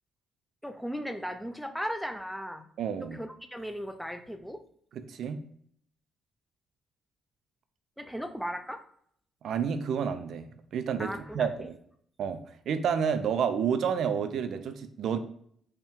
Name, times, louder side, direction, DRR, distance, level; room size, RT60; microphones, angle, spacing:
voice 1, 0.6-2.7 3.1-4.6 8.0-8.8 11.0-11.5, equal, ahead, 7 dB, 0.4 m, -36 dB
voice 2, 2.8-3.2 4.9-5.4 9.4-10.4 10.7-11.8 12.2-12.4 12.7-15.2, right 7 dB, 70° right, 9 dB, 0.4 m, -30 dB
4.3 x 2.2 x 3.6 m, 0.65 s
cardioid pair, 90°, 0 cm